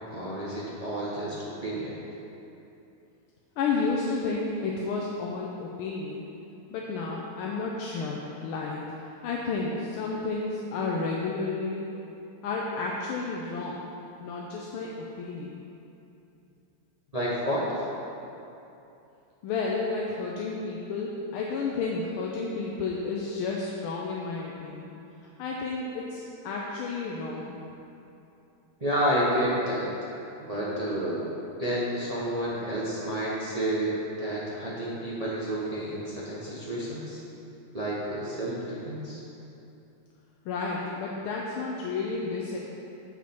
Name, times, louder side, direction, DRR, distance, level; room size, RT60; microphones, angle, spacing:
voice 1, 0.1-1.9 17.1-17.8 28.8-29.9 30.4-33.9 34.2-37.2 37.7-39.2, right 1 dB, 40° right, -7 dB, 0.5 m, -30 dB
voice 2, 3.6-6.3 6.7-11.8 12.4-13.9 14.2-15.6 19.4-24.9 25.4-27.5 40.4-42.6, left 4 dB, 85° left, -2 dB, 1.5 m, -31 dB
7.2 x 6.2 x 4.4 m, 2.8 s
omnidirectional pair, 2.3 m